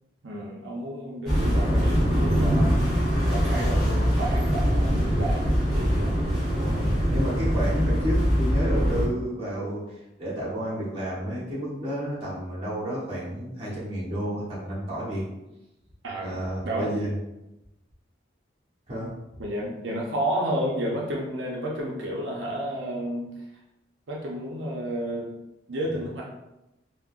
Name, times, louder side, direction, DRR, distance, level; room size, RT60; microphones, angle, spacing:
voice 1, 0.2-2.8 3.1-6.1 16.0-16.3 16.6-16.9 19.4-23.3 24.1-25.3 25.7-26.2, right 1 dB, 90° right, -2 dB, 0.5 m, -31 dB
sound 1, 1.3-9.0, equal, ahead, 1.2 m, -23 dB
voice 2, 6.4-15.2 16.2-17.1 18.9-19.1, equal, 30° right, -8 dB, 1.1 m, -31 dB
3.6 x 2.0 x 2.4 m, 0.95 s
head